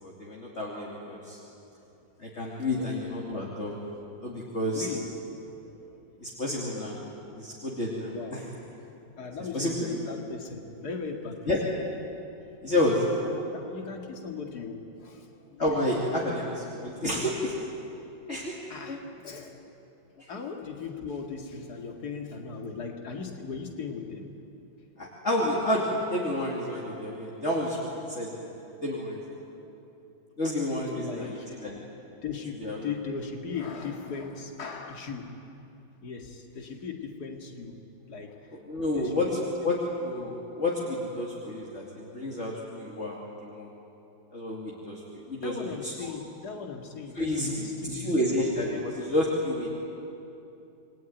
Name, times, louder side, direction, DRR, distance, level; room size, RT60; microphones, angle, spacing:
voice 1, 0.0-1.4 2.2-3.7 4.2-4.9 6.2-7.0 7.3-8.4 9.5-10.0 11.5-11.6 12.6-13.0 15.6-17.5 18.3-18.5 18.9-19.0 20.2-20.3 25.0-28.3 28.8-29.2 30.4-31.8 32.6-32.9 38.7-39.3 39.6-43.7 44.3-45.0 45.3-45.9 47.1-47.5 47.9-49.7, left 1 dB, 35° left, -4 dB, 3.0 m, -30 dB
voice 2, 4.7-5.1 5.6-6.0 8.1-8.7 9.1-11.5 13.3-15.6 18.7-19.6 20.3-24.3 31.0-31.8 32.2-35.3 36.0-37.8 38.1-38.5 38.9-39.1 39.6-39.7 45.4-48.4 48.7-48.8, left 5 dB, 55° left, 2 dB, 2.7 m, -38 dB
28.5 x 21.5 x 9.3 m, 2.8 s
omnidirectional pair, 2.1 m